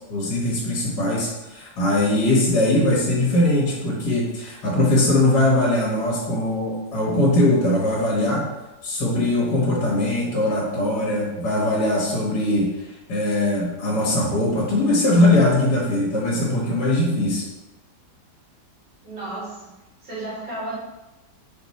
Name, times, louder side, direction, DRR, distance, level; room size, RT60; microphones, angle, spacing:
voice 1, 0.1-8.4 8.8-12.7 13.1-17.4, left 1 dB, 70° left, -4 dB, 2.0 m, -21 dB
voice 2, 19.0-20.7, right 2 dB, 85° right, -11 dB, 2.7 m, -33 dB
5.2 x 4.3 x 4.2 m, 1.0 s
omnidirectional pair, 1.8 m